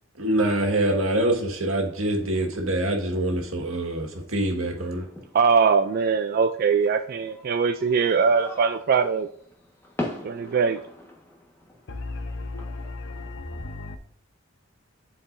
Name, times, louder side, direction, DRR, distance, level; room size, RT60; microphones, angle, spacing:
voice 1, 0.2-5.0, right 1 dB, 85° right, 1.7 m, -25 dB
sound 1, 0.8-13.3, left 1 dB, 10° left, 1.4 m, -43 dB
voice 2, 5.3-9.3 10.2-10.8, right 5 dB, 45° right, 0.3 m, -21 dB
voice 3, 11.9-14.0, left 2 dB, 65° left, 0.8 m, -35 dB
11.5 x 4.7 x 2.6 m
head